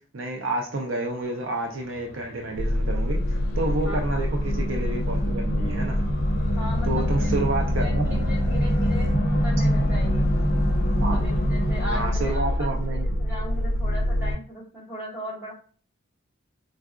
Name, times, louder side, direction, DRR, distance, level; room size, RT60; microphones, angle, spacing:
voice 1, 0.1-6.0 6.8-8.0 11.0-11.2 11.9-13.2, right 2 dB, 65° right, 2 dB, 0.5 m, -29 dB
sound 1, 1.8-12.2, right 1 dB, 45° left, 0.8 m, -29 dB
sound 2, 2.6-14.4, left 1 dB, 75° left, 0.4 m, -25 dB
voice 2, 3.8-4.2 6.5-7.3 7.6-10.3 11.1-15.5, equal, 10° right, -7 dB, 1.5 m, -38 dB
4.5 x 2.4 x 2.3 m, 0.42 s
head